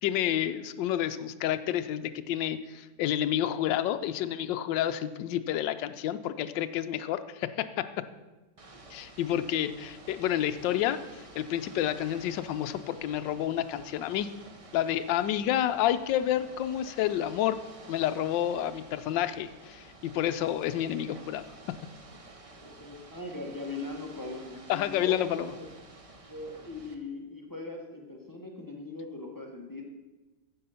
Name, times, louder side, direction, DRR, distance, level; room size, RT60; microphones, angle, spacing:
voice 1, 0.0-8.0 8.9-14.3 14.7-17.6 17.9-21.4 24.7-25.5, left 11 dB, 80° left, 10 dB, 1.2 m, -29 dB
Ocean / Boat Water vehicle, 8.6-26.9, right 2 dB, 60° right, 0.3 m, -51 dB
voice 2, 22.5-25.7 26.3-29.8, left 2 dB, 15° left, 0 dB, 1.1 m, -40 dB
9.4 x 7.6 x 5.6 m, 1.1 s
omnidirectional pair, 2.0 m